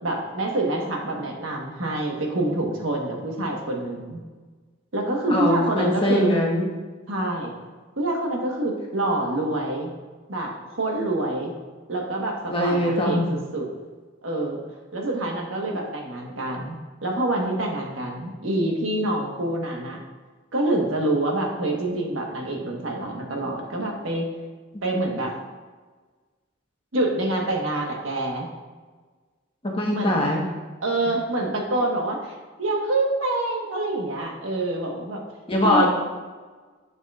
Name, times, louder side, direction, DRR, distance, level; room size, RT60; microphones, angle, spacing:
voice 1, 0.0-4.2 4.9-6.3 7.1-7.6 8.0-9.9 10.3-11.5 11.9-13.7 14.2-14.6 14.9-16.8 17.0-20.0 20.5-24.3 24.8-25.3 26.9-28.5 29.9-30.2 30.8-35.2 35.6-35.9, right 2 dB, 85° right, 0 dB, 1.2 m, -26 dB
voice 2, 5.3-6.7 12.5-13.3 29.6-30.4 35.5-35.9, left 1 dB, 25° left, -1 dB, 1.1 m, -22 dB
7.3 x 7.3 x 2.4 m, 1.4 s
head